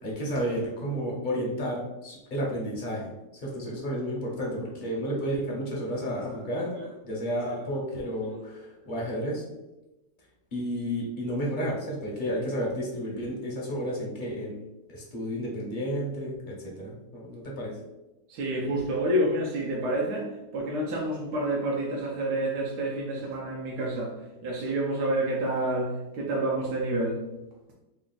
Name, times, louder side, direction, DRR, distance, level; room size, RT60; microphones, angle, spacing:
voice 1, 0.0-6.7 7.0-9.4 10.5-14.6 14.9-17.7, equal, 40° left, -3 dB, 0.7 m, -32 dB
voice 2, 18.3-24.1 24.4-27.2, right 1 dB, 75° right, -3 dB, 1.2 m, -28 dB
3.4 x 2.3 x 3.8 m, 1.0 s
omnidirectional pair, 1.8 m